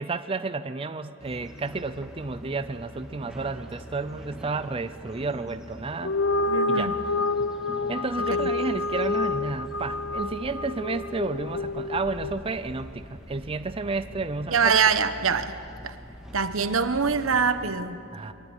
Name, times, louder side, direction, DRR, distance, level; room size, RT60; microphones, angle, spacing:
voice 1, 0.0-6.1 6.7-6.9 7.9-14.7 18.1-18.3, right 3 dB, 25° right, 11 dB, 0.5 m, -31 dB
sound 1, 1.2-17.7, equal, 5° right, 2.0 m, -44 dB
sound 2, 5.9-12.5, left 3 dB, 75° left, 0.8 m, -28 dB
voice 2, 6.5-7.0 8.4-8.5 14.5-15.6 15.8-15.9 16.3-18.0, right 5 dB, 90° right, 11 dB, 1.1 m, -24 dB
23.0 x 19.5 x 8.1 m, 2.8 s
head